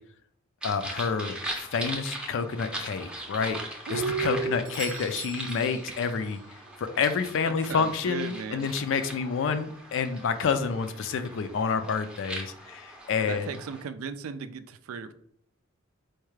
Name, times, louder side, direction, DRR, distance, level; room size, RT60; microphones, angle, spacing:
voice 1, 0.6-3.6 3.9-6.4 6.8-13.5, left 5 dB, 65° left, 10 dB, 0.4 m, -29 dB
sound 1, 0.6-13.8, right 1 dB, 5° right, 0.5 m, -40 dB
voice 2, 3.9-4.6 7.5-8.7 13.2-15.1, right 5 dB, 90° right, 12 dB, 0.4 m, -34 dB
Doorbell, 4.6-6.5 10.6-10.7, right 9 dB, 45° right, 0.7 m, -44 dB
4.5 x 2.3 x 3.1 m, 0.69 s
head